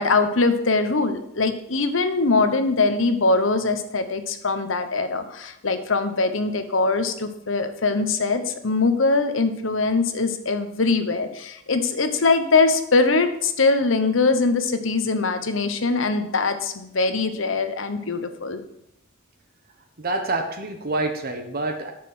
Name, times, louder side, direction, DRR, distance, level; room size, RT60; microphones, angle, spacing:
voice 1, 0.0-18.6, left 3 dB, 75° left, 9 dB, 1.1 m, -22 dB
voice 2, 20.0-21.9, right 2 dB, 50° right, 5 dB, 1.2 m, -27 dB
9.5 x 6.7 x 6.1 m, 0.76 s
head